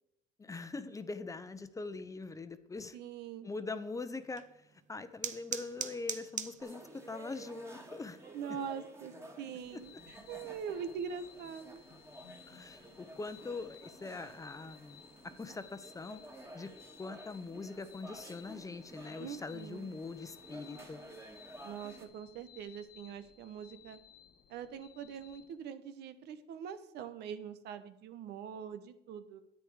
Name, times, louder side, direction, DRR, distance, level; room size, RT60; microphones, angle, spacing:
voice 1, 0.4-3.0 3.4-4.4 4.9-8.2 12.5-15.0 15.4-16.2 16.5-16.7 17.0-21.0, left 3 dB, 20° left, 11 dB, 0.8 m, -42 dB
voice 2, 2.9-3.5 8.3-11.8 19.2-19.9 21.6-24.0 24.5-29.4, right 7 dB, 80° right, 11 dB, 1.1 m, -43 dB
sound 1, 4.2-15.3, right 8 dB, 45° right, 0.9 m, -48 dB
sound 2, 6.6-22.0, right 1 dB, 15° right, 2.2 m, -52 dB
sound 3, 9.6-25.6, left 9 dB, 70° left, 1.3 m, -59 dB
10.0 x 8.5 x 4.9 m, 0.83 s
cardioid pair, 110°, 17 cm